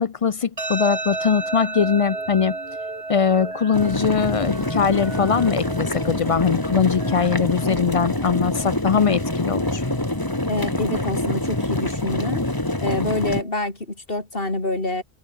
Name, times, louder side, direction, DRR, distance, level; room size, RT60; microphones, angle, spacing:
voice 1, 0.0-2.6 3.1-9.8, left 6 dB, 45° left, 0.5 m, -21 dB
sound 1, 0.6-13.6, right 2 dB, 35° right, 2.0 m, -35 dB
sound 2, 0.7-8.1, right 2 dB, 70° right, 4.4 m, -42 dB
sound 3, 3.7-13.4, left 1 dB, 20° left, 2.5 m, -25 dB
voice 2, 10.5-12.4 12.8-15.0, left 2 dB, 65° left, 4.8 m, -26 dB
omnidirectional pair, 1.0 m